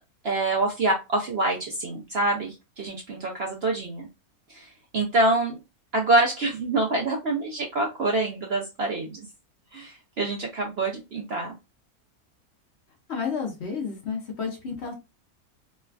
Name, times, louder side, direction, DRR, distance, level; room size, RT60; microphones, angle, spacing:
voice 1, 0.2-4.1 4.5-5.6 5.9-9.3 9.7-11.6, right 2 dB, 60° right, 0 dB, 0.7 m, -26 dB
voice 2, 13.1-14.9, left 6 dB, 55° left, 1 dB, 0.9 m, -31 dB
3.2 x 2.3 x 2.2 m, 0.26 s
omnidirectional pair, 1.5 m